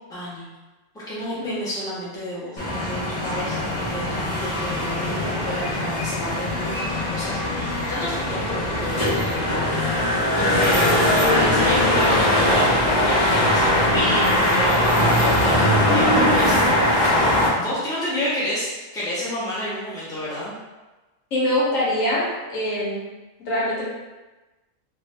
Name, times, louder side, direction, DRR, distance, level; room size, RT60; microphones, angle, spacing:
voice 1, 0.1-0.5 1.1-20.5, equal, 5° left, -9 dB, 0.7 m, -30 dB
sound 1, 2.6-17.5, left 1 dB, 40° left, 0.8 m, -21 dB
voice 2, 21.3-23.1 23.4-23.8, left 1 dB, 80° left, -5 dB, 1.3 m, -23 dB
2.6 x 2.5 x 3.3 m, 1.2 s
omnidirectional pair, 1.4 m